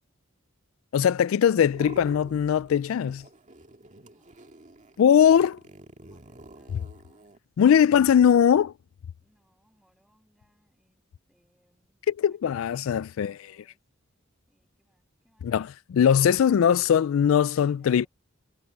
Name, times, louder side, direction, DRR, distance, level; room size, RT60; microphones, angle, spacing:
voice 1, 0.9-3.2 5.0-5.5 7.6-8.7 12.2-13.3 15.4-18.1, left 8 dB, 75° left, 0.3 m, -20 dB
sound 1, 1.5-2.8 3.0-7.4, right 1 dB, 35° right, 1.9 m, -48 dB
voice 2, 4.0-4.3 5.0-5.4 5.9-7.3 9.2-11.0 11.3-12.0 12.3-13.8 14.5-15.8 16.4-18.1, equal, ahead, 7.0 m, -68 dB
head